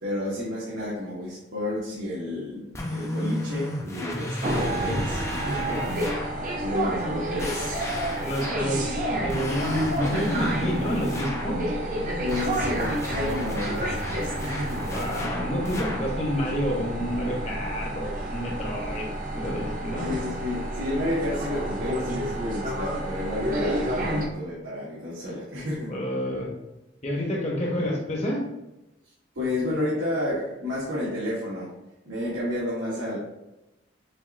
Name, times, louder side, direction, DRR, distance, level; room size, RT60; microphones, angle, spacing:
voice 1, 0.0-5.9 6.6-7.9 12.2-14.9 20.0-26.0 29.3-31.7 32.0-33.2, left 1 dB, 80° right, -9 dB, 1.4 m, -31 dB
sound 1, 2.7-6.4 7.4-8.8 9.3-11.6 12.3-16.1, left 1 dB, 15° left, 0.4 m, -34 dB
sound 2, 4.4-24.2, right 1 dB, 45° right, 0.6 m, -30 dB
voice 2, 8.2-11.6 14.9-19.1 19.3-20.1 25.9-26.5 27.0-28.4, equal, 35° left, -1 dB, 0.9 m, -29 dB
6.4 x 2.6 x 2.5 m, 0.96 s
head